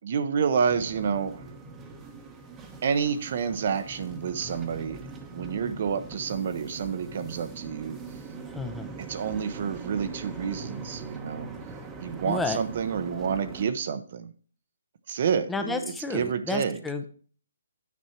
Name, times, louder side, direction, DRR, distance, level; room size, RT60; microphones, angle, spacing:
voice 1, 0.0-1.4 2.8-5.0 5.3-8.0 9.1-11.5 12.0-14.3 15.1-16.8, right 6 dB, 50° right, 11 dB, 0.8 m, -29 dB
sound 1, 0.7-13.7, right 4 dB, 15° right, 1.0 m, -42 dB
voice 2, 8.5-9.0 12.3-12.6 15.5-17.1, left 3 dB, 5° left, 6 dB, 0.7 m, -31 dB
9.4 x 5.4 x 4.5 m, 0.42 s
hypercardioid pair, 150°, 0 cm